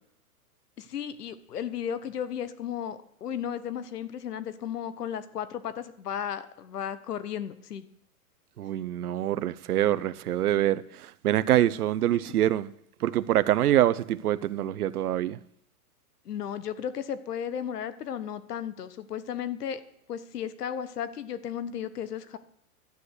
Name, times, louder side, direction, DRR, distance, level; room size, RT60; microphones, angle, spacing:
voice 1, 0.8-7.8 16.2-19.8 20.1-22.4, left 9 dB, 90° left, 1.4 m, -34 dB
voice 2, 8.6-12.7 13.0-15.4, right 12 dB, 75° right, 0.8 m, -25 dB
12.5 x 9.8 x 6.5 m
hypercardioid pair, 180°, 45 cm